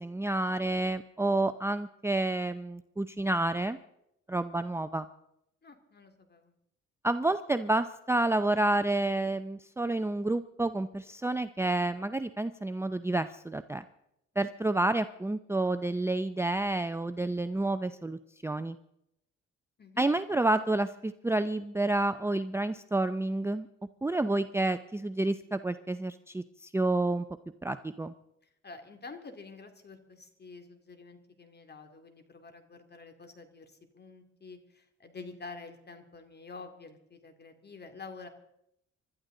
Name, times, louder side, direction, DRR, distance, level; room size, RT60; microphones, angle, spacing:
voice 1, 0.0-3.8 4.3-5.1 7.0-13.8 14.4-18.8 20.0-23.7 24.0-27.3 27.6-28.1, right 2 dB, 10° right, 10 dB, 0.6 m, -29 dB
voice 2, 5.6-6.5 19.8-20.1 28.4-38.3, left 4 dB, 35° left, 7 dB, 2.5 m, -48 dB
25.5 x 12.5 x 3.8 m, 0.79 s
cardioid pair, 90°, 30 cm